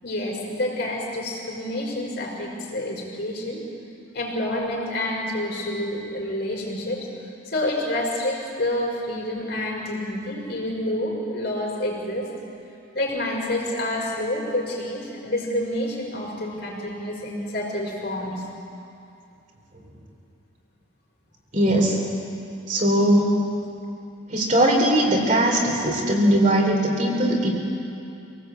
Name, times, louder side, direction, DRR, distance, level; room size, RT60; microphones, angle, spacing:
voice 1, 0.0-3.6 4.1-7.1 7.5-12.3 12.9-18.4, left 1 dB, 55° left, -2 dB, 5.4 m, -28 dB
voice 2, 21.5-22.0 22.7-23.4 24.3-27.5, right 1 dB, 40° right, 0 dB, 3.7 m, -20 dB
26.5 x 19.0 x 8.4 m, 2.7 s
head